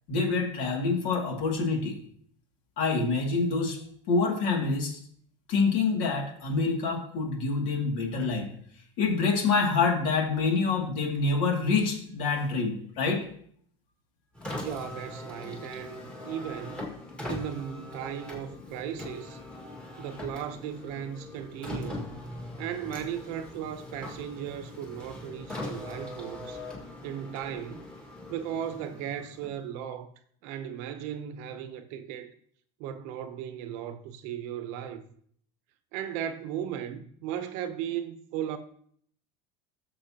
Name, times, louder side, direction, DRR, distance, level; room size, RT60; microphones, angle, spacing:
voice 1, 0.1-2.0 2.8-3.8 4.1-5.0 5.5-8.5 9.0-13.2, left 4 dB, 55° left, 2.5 m, -26 dB
Car, 14.3-29.7, left 1 dB, 5° left, 1.9 m, -41 dB
voice 2, 14.5-16.9 17.3-19.4 20.0-22.0 22.6-26.6 27.0-27.9 28.3-30.1 30.4-32.3 32.8-35.0 35.9-38.6, right 9 dB, 55° right, 0.8 m, -36 dB
13.0 x 7.0 x 2.9 m
supercardioid pair, 150°, 15 cm